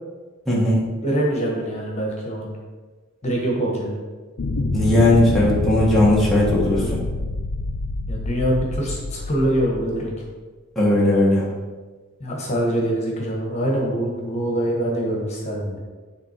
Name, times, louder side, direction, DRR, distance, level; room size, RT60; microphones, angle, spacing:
voice 1, 0.5-0.8 4.7-7.0 10.7-11.5, left 1 dB, ahead, -7 dB, 1.3 m, -18 dB
voice 2, 1.0-2.5 3.2-3.9 6.7-7.0 8.1-10.1 12.2-15.8, right 1 dB, 30° left, -1 dB, 1.4 m, -24 dB
sound 1, 4.4-10.1, left 2 dB, 85° left, 0.7 m, -26 dB
9.4 x 3.7 x 4.5 m, 1.3 s
head